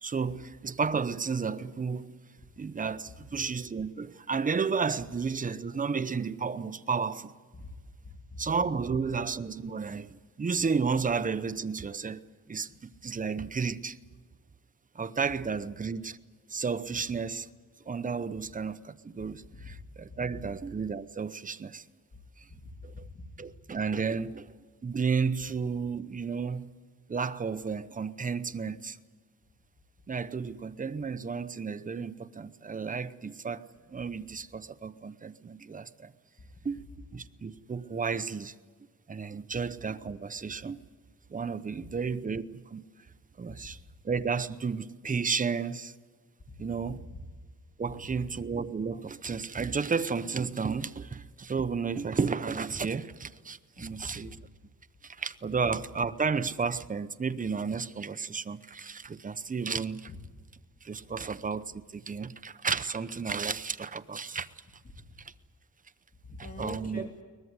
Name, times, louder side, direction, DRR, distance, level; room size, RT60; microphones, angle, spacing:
voice 1, 0.0-2.1 2.6-7.3 8.4-12.2 12.5-14.0 14.9-16.2 16.5-17.5 17.9-21.9 22.4-22.5 22.8-23.1 23.4-24.5 24.8-26.7 27.1-29.0 30.1-36.1 36.6-38.5 39.1-40.8 41.3-42.8 43.4-43.8 44.0-45.9 46.6-47.0 47.8-54.4 55.0-60.1 60.8-64.5 65.2-65.3 66.6-67.1, right 5 dB, 25° right, 0.8 m, -32 dB
voice 2, 8.0-8.4 19.5-19.8 20.1-20.4 22.5-23.5 43.5-43.6 46.5-47.2 53.8-54.3 60.1-60.2 66.2-67.1, left 2 dB, 25° left, 2.7 m, -45 dB
22.5 x 20.0 x 9.6 m
wide cardioid pair, 125°, 33 cm